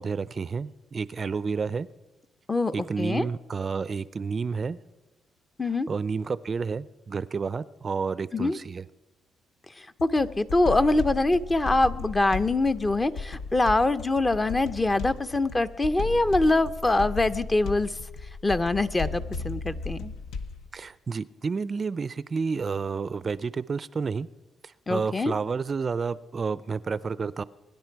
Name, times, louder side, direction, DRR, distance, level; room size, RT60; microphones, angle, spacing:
voice 1, 0.0-1.9 2.7-4.8 5.9-8.8 20.7-24.3 24.6-27.4, right 5 dB, 40° right, 18 dB, 0.4 m, -30 dB
voice 2, 2.5-3.3 5.6-5.9 8.3-8.6 9.8-18.0 18.4-20.1 24.9-25.3, left 2 dB, 20° left, 12 dB, 0.6 m, -24 dB
sound 1, 10.0-20.7, left 4 dB, 85° left, 0.9 m, -35 dB
23.0 x 10.5 x 4.6 m, 1.1 s
cardioid pair, 90°, 0 cm